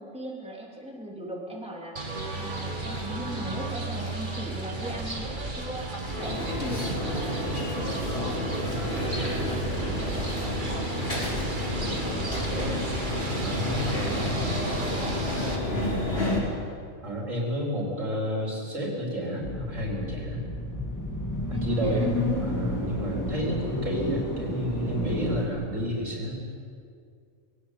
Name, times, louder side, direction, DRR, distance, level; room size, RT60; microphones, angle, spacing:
voice 1, 0.0-2.0 2.4-5.9 6.2-13.0 13.6-15.9 21.5-22.1, right 1 dB, 5° right, -3 dB, 3.4 m, -40 dB
sound 1, 2.0-15.6, right 2 dB, 35° right, 2.3 m, -34 dB
sound 2, 6.2-16.4, left 1 dB, 45° left, 5.8 m, -30 dB
voice 2, 13.4-14.4 17.0-20.5 21.5-26.4, equal, 70° right, -2 dB, 4.8 m, -31 dB
sound 3, 19.4-25.5, left 1 dB, 15° left, 2.5 m, -31 dB
22.0 x 17.5 x 8.6 m, 2.3 s
omnidirectional pair, 1.4 m